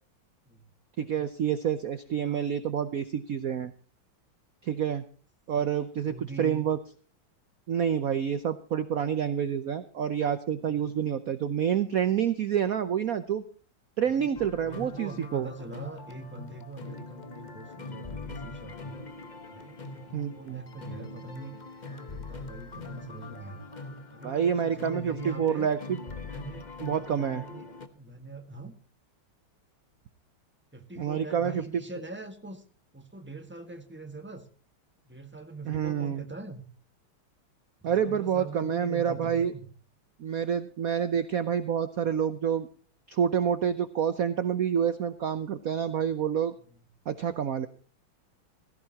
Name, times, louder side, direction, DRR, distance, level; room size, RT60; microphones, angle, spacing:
voice 1, 1.0-3.7 4.6-5.0 5.5-6.8 7.7-13.4 14.0-15.5 20.1-20.6 24.2-26.0 26.8-27.4 31.0-31.6 35.7-36.2 37.8-39.5 40.2-42.7 43.1-46.5 47.1-47.7, right 8 dB, 70° right, 12 dB, 0.8 m, -28 dB
voice 2, 6.0-6.7 10.6-10.8 14.1-19.0 19.5-21.6 21.9-23.6 24.1-25.7 26.2-26.7 27.1-27.7 27.9-28.7 30.7-32.6 32.9-34.5 35.1-36.7 37.8-39.7 46.6-46.9, right 3 dB, 5° right, 6 dB, 1.2 m, -43 dB
sound 1, 14.3-27.9, left 3 dB, 40° left, 0.6 m, -42 dB
16.5 x 16.0 x 2.9 m, 0.39 s
omnidirectional pair, 2.4 m